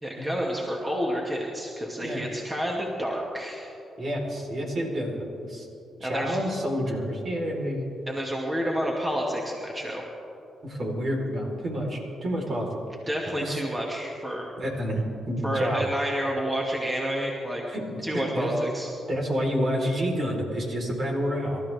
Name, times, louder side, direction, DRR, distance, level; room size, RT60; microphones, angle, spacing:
voice 1, 0.0-3.7 6.0-6.4 8.1-10.0 13.1-14.5 15.4-17.6 18.0-18.9, equal, 20° right, -2 dB, 2.3 m, -29 dB
voice 2, 4.0-5.7 6.0-7.9 10.6-12.7 13.4-13.6 14.6-15.9 17.7-18.5 19.1-21.6, equal, 50° right, -1 dB, 4.4 m, -29 dB
26.5 x 13.5 x 3.6 m, 2.8 s
cardioid pair, 70°, 0 cm